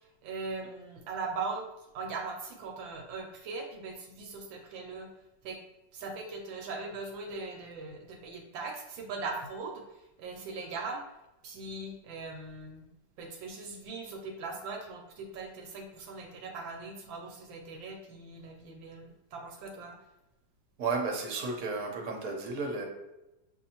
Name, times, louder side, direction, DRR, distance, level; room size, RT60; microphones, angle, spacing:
voice 1, 0.2-1.7 1.9-5.1 5.4-5.6 5.9-11.0 11.4-12.9 13.2-19.9, right 4 dB, 80° right, 2 dB, 1.4 m, -40 dB
voice 2, 20.8-22.9, right 4 dB, 55° right, 0 dB, 1.1 m, -33 dB
6.5 x 2.7 x 2.8 m, 0.97 s
omnidirectional pair, 2.1 m